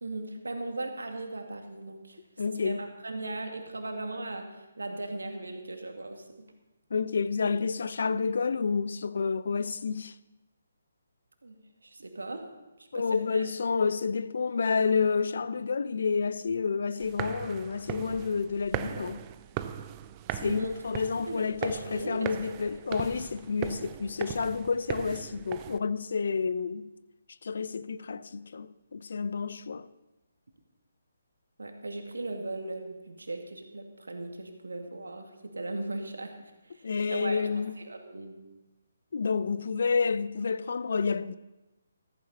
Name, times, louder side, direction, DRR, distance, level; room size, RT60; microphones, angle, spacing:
voice 1, 0.0-2.2 2.5-6.5 11.4-12.5 12.8-13.5 20.4-20.8 21.3-22.4 31.6-36.4 36.6-37.5 37.8-38.4, right 2 dB, 80° right, 2.2 m, -38 dB
voice 2, 2.4-2.8 6.9-10.1 12.9-19.2 20.4-26.9 27.4-29.9 36.8-37.7 39.1-41.3, left 5 dB, 60° left, 0.6 m, -29 dB
sound 1, 17.0-25.8, right 11 dB, 25° right, 0.6 m, -39 dB
14.5 x 14.5 x 4.2 m
figure-of-eight pair, 145°, 0 cm